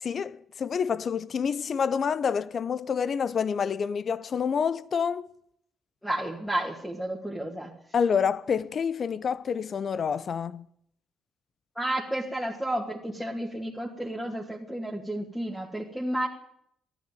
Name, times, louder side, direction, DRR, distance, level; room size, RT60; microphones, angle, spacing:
voice 1, 0.0-5.3 7.9-10.6, left 6 dB, 50° left, 0.7 m, -28 dB
voice 2, 6.0-7.7 11.8-16.3, right 1 dB, ahead, 2.2 m, -31 dB
13.5 x 11.0 x 9.2 m
cardioid pair, 90°, 0 cm